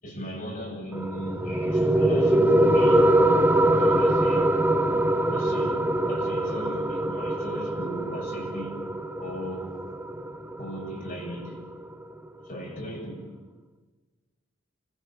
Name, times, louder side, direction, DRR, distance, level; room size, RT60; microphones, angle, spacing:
voice 1, 0.0-3.1 3.8-4.9 5.3-8.7 9.2-9.7 10.6-11.6 12.4-13.3, equal, 50° left, 7.0 m, -37 dB
sound 1, 0.9-11.9, right 1 dB, 10° right, 0.9 m, -23 dB
29.5 x 16.0 x 8.8 m
head